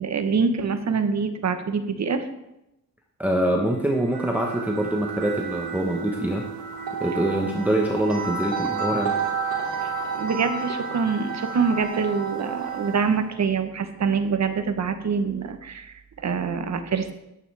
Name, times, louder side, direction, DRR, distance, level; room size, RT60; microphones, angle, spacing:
voice 1, 0.0-2.2 9.8-17.1, right 5 dB, 50° right, 8 dB, 1.0 m, -25 dB
voice 2, 3.2-6.5 7.0-9.1, right 1 dB, 5° right, 0 dB, 1.0 m, -24 dB
sound 1, 3.8-13.3, right 5 dB, 80° right, 3.1 m, -31 dB
10.5 x 8.8 x 3.4 m, 0.89 s
cardioid pair, 105°, 36 cm